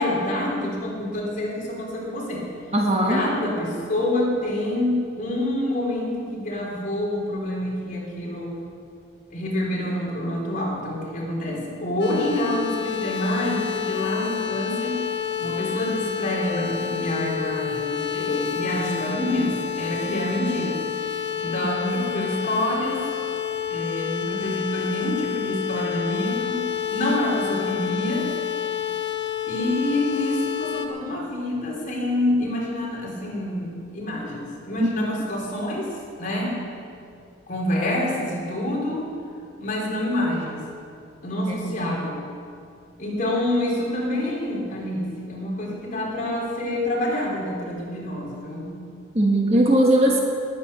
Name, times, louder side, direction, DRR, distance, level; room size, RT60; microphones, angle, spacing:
voice 1, 0.0-2.5 3.1-8.5 9.3-15.0 15.4-20.8 21.4-23.0 23.7-26.7 26.9-28.3 29.4-36.6 37.5-39.1 39.6-40.6 41.2-42.2 43.0-48.8, left 1 dB, 45° left, -3 dB, 3.9 m, -27 dB
voice 2, 2.7-3.2 34.8-35.1 41.5-41.9 49.1-50.2, right 1 dB, 35° right, 0 dB, 1.7 m, -20 dB
sound 1, 12.0-30.9, left 9 dB, 60° left, 1.3 m, -29 dB
19.5 x 9.1 x 6.9 m, 2.4 s
head